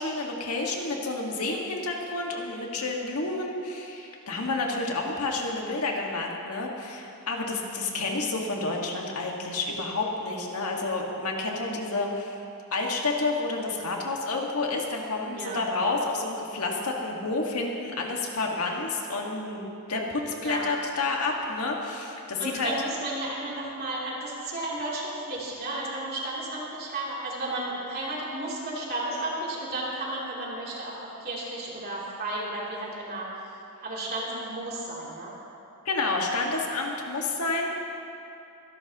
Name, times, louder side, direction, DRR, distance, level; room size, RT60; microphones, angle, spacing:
voice 1, 0.0-12.4 12.7-22.7 35.8-37.7, left 3 dB, 85° left, 0 dB, 1.7 m, -30 dB
voice 2, 7.4-7.7 15.3-15.7 20.4-20.7 22.4-33.3 33.8-35.3, right 2 dB, 45° right, -5 dB, 3.1 m, -33 dB
24.5 x 11.5 x 3.0 m, 2.7 s
head